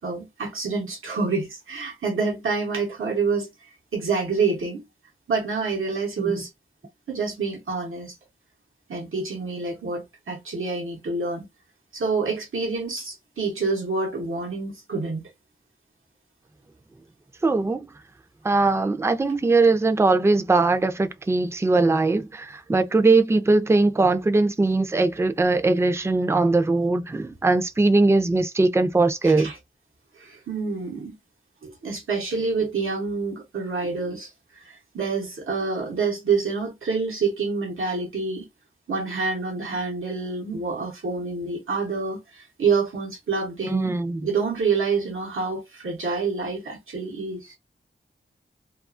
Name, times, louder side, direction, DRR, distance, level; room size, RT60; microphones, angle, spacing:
voice 1, 0.0-4.8 5.3-6.5 7.1-8.2 8.9-11.5 11.9-15.2 29.2-29.6 30.2-31.1 31.6-38.5 38.9-43.9 44.2-47.6, right 4 dB, 85° right, 0.9 m, -27 dB
voice 2, 17.4-17.9 18.4-29.5 43.7-44.3, right 3 dB, 15° right, 0.4 m, -20 dB
2.4 x 2.3 x 2.4 m
cardioid pair, 45°, 20 cm